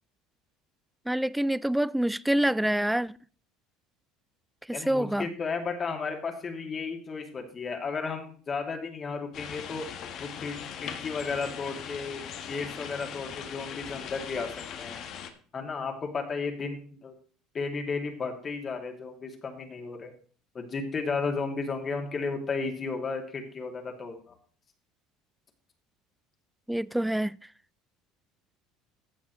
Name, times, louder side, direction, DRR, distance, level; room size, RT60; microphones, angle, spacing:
voice 1, 1.1-3.2 4.7-5.3 26.7-27.4, right 1 dB, 5° right, 0.3 m, -26 dB
voice 2, 4.7-9.9 10.2-10.5 10.8-12.2 12.5-14.5 14.8-15.0 15.5-17.1 17.5-20.1 20.5-24.3, left 4 dB, 35° left, 2.4 m, -33 dB
sound 1, 9.3-15.3, left 8 dB, 55° left, 1.3 m, -40 dB
14.5 x 7.3 x 3.1 m
hypercardioid pair, 80°, 0 cm